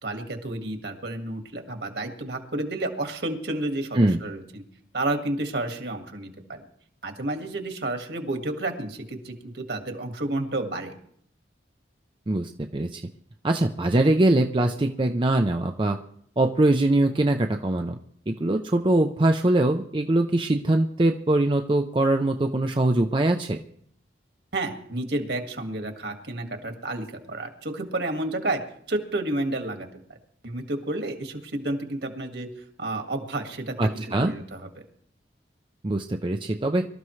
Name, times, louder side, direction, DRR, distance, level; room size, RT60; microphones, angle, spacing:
voice 1, 0.0-4.6 4.9-6.6 7.0-10.9 24.5-28.6 28.9-29.9 30.4-32.5 32.8-34.8, right 2 dB, 65° right, 4 dB, 1.9 m, -31 dB
voice 2, 12.3-13.0 13.4-16.0 16.4-18.0 18.3-23.6 33.8-34.3 35.8-36.8, right 1 dB, 25° right, 4 dB, 0.5 m, -22 dB
24.0 x 13.0 x 3.2 m, 0.66 s
head